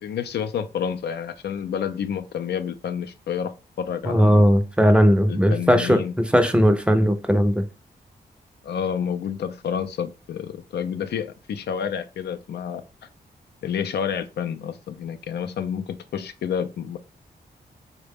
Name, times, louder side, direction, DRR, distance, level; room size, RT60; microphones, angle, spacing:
voice 1, 0.0-4.4 5.3-6.1 8.6-12.8 13.6-17.0, left 8 dB, 85° left, 0.4 m, -29 dB
voice 2, 4.1-7.7, equal, 5° right, 0.5 m, -18 dB
3.9 x 2.2 x 3.4 m
wide cardioid pair, 95°, 17 cm